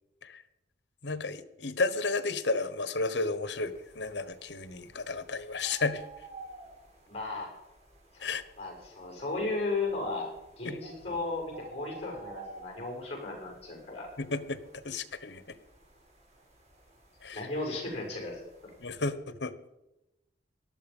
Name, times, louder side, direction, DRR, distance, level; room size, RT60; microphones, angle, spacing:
voice 1, 1.0-6.0 8.2-8.4 10.6-10.8 14.2-15.6 17.2-17.4 18.8-19.5, left 3 dB, 85° left, 14 dB, 1.2 m, -32 dB
sound 1, 3.5-19.1, right 3 dB, 40° right, 4.1 m, -53 dB
voice 2, 7.1-7.5 8.1-10.3 10.6-14.1 17.3-18.7, left 3 dB, 35° left, 0 dB, 7.1 m, -35 dB
18.5 x 12.5 x 5.4 m, 0.96 s
head